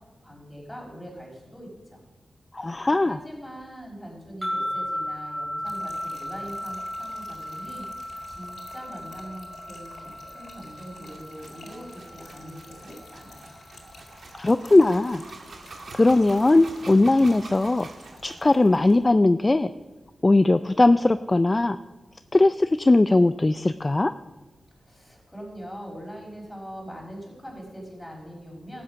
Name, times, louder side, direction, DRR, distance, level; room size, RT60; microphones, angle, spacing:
voice 1, 0.2-2.0 3.1-13.6 24.8-28.8, equal, 5° left, -2 dB, 5.1 m, -42 dB
voice 2, 2.5-3.2 14.4-15.3 16.0-17.9 18.2-19.7 20.2-21.8 22.3-24.1, left 2 dB, 30° left, 12 dB, 0.4 m, -19 dB
sound 1, 4.4-13.7, equal, 15° right, 3.4 m, -36 dB
Trickle dribble / Fill (with liquid), 5.7-19.1, left 3 dB, 85° left, 2.5 m, -50 dB
sound 2, 10.7-18.5, right 3 dB, 75° right, 1.6 m, -46 dB
13.0 x 8.6 x 5.6 m, 1.2 s
cardioid pair, 70°, 0 cm